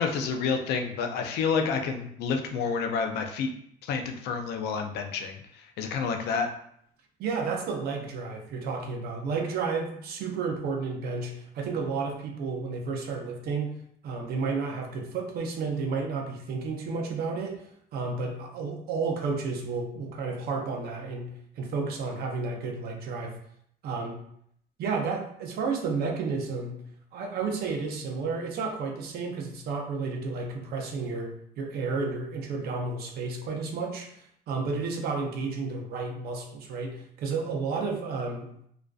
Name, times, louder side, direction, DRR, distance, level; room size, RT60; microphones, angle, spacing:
voice 1, 0.0-3.5 3.8-5.4 5.8-6.5, left 5 dB, 75° left, 5 dB, 0.4 m, -29 dB
voice 2, 7.2-17.6 17.9-23.4 23.8-24.2 24.8-26.8 27.1-38.5, right 4 dB, 65° right, 2 dB, 0.5 m, -32 dB
2.4 x 2.3 x 2.3 m, 0.69 s
cardioid pair, 110°, 17 cm